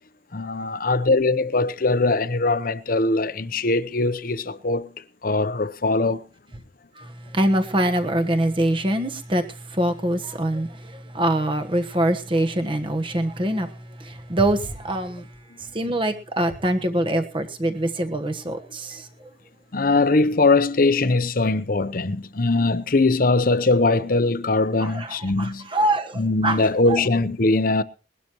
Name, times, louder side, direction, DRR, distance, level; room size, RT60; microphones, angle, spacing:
voice 1, 0.3-4.9 5.2-6.2 19.7-25.7 26.1-27.8, left 3 dB, 50° left, 0.8 m, -21 dB
voice 2, 7.3-9.4 9.7-13.7 14.0-15.3 15.7-19.0 24.8-26.6 26.9-27.0, right 1 dB, 25° right, 1.2 m, -24 dB
21.0 x 12.5 x 3.0 m
head